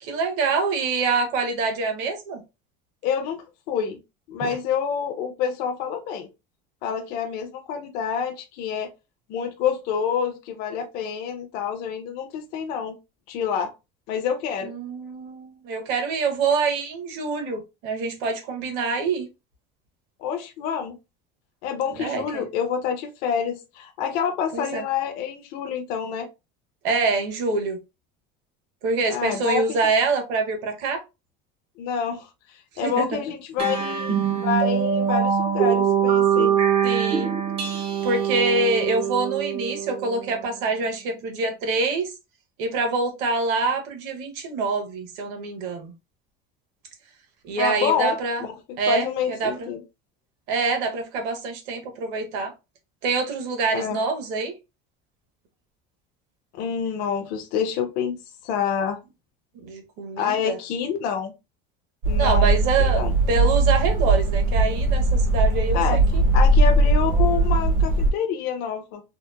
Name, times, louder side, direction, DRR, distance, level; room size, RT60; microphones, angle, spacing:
voice 1, 0.0-2.4 4.4-4.5 14.6-19.3 22.0-22.5 24.5-24.8 26.8-27.8 28.8-31.0 32.8-33.2 36.8-37.4 38.0-42.1 42.6-45.9 47.5-48.4 48.8-49.7 50.5-52.5 53.0-54.5 59.6-60.6 62.2-66.2, right 3 dB, 55° right, 0.7 m, -25 dB
voice 2, 3.0-4.0 4.3-6.3 6.8-8.9 9.3-12.9 13.3-13.7 14.1-14.7 20.2-21.0 21.6-26.3 29.1-29.8 31.8-36.5 47.6-48.5 48.9-49.8 53.7-54.0 56.5-58.2 58.4-59.0 60.2-61.3 62.1-63.1 65.7-66.0 66.3-69.0, left 7 dB, 50° left, 0.4 m, -27 dB
sound 1, 33.6-40.5, right 8 dB, 30° right, 0.4 m, -23 dB
sound 2, 62.0-68.1, right 2 dB, 80° right, 1.0 m, -19 dB
2.8 x 2.0 x 2.2 m
cardioid pair, 170°, 21 cm